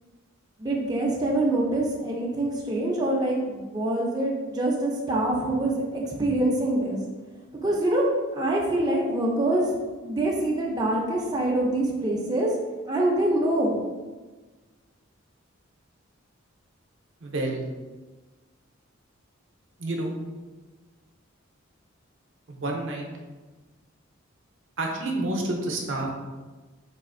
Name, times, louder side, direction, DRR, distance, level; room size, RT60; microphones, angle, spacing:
voice 1, 0.6-7.0 7.6-9.7 10.0-12.5 12.9-13.8, right 1 dB, 20° right, -3 dB, 0.4 m, -25 dB
voice 2, 17.2-17.6 19.8-20.1 22.5-23.1 24.8-26.1, right 2 dB, 65° right, 1 dB, 0.5 m, -29 dB
4.0 x 2.4 x 2.5 m, 1.3 s
head